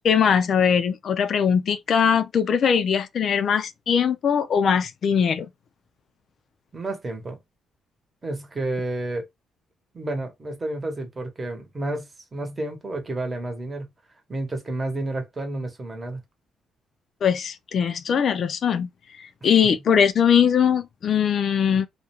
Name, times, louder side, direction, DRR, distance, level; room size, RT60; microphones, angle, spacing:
voice 1, 0.0-5.5 17.2-18.9 19.2-21.9, left 7 dB, 60° left, 0.4 m, -21 dB
voice 2, 6.7-7.4 8.2-9.2 9.9-13.9 14.3-16.2, right 2 dB, 25° right, 0.9 m, -30 dB
2.4 x 2.1 x 2.9 m
cardioid pair, 90°, 0 cm